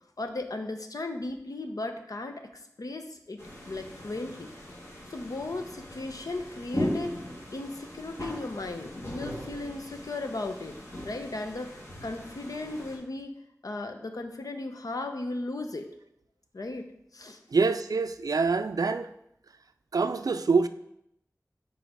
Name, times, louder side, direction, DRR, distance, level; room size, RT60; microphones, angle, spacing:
voice 1, 0.2-4.5 5.1-7.2 7.5-13.4 13.6-15.9 16.5-17.4, left 2 dB, 80° left, 0.7 m, -36 dB
sound 1, 3.4-13.0, left 1 dB, 50° left, 1.7 m, -38 dB
voice 2, 17.5-19.1 19.9-20.7, right 4 dB, 80° right, 0.4 m, -25 dB
5.1 x 4.9 x 4.8 m
wide cardioid pair, 60°, 6 cm